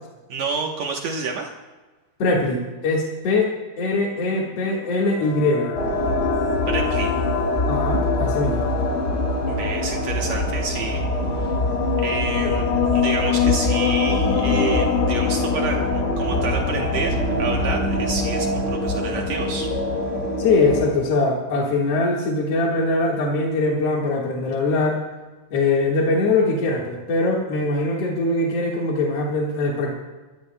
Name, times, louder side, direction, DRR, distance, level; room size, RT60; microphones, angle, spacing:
voice 1, 0.3-1.5 6.7-7.1 9.5-11.0 11.4-11.6 12.0-19.7, right 4 dB, 90° right, 1 dB, 1.5 m, -29 dB
voice 2, 2.2-3.5 3.8-5.8 7.7-8.7 12.4-12.5 20.4-25.0 25.5-29.9, left 2 dB, 50° left, -2 dB, 2.0 m, -22 dB
sound 1, 4.4-18.5, left 15 dB, 85° left, 2.0 m, -27 dB
sound 2, 5.7-20.9, equal, 30° left, 1.3 m, -24 dB
27.5 x 14.5 x 2.2 m, 1.2 s
omnidirectional pair, 4.8 m